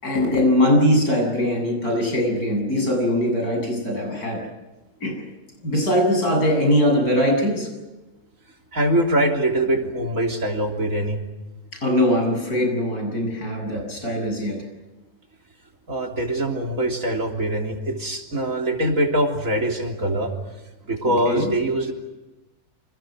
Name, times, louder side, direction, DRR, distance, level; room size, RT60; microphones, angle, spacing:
voice 1, 0.0-4.4 5.0-5.2 5.6-7.7 11.7-14.6 21.0-21.5, left 1 dB, 80° left, 3 dB, 8.5 m, -21 dB
voice 2, 8.7-11.2 15.9-20.3 20.9-21.9, right 1 dB, 60° right, 2 dB, 3.8 m, -23 dB
29.0 x 26.0 x 6.4 m, 1.1 s
omnidirectional pair, 1.6 m